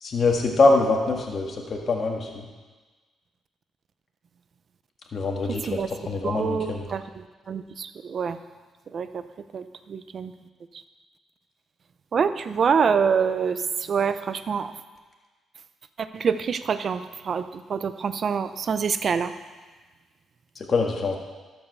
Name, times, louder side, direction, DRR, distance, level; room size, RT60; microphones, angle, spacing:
voice 1, 0.0-2.5 5.1-5.8 6.1-6.8 20.6-21.2, left 3 dB, 45° left, 1 dB, 1.8 m, -23 dB
voice 2, 6.2-8.4 8.9-9.2 9.5-10.3 12.1-14.7 16.0-19.3, right 6 dB, 50° right, 11 dB, 0.6 m, -26 dB
13.0 x 5.4 x 6.8 m, 1.3 s
cardioid pair, 90°, 0 cm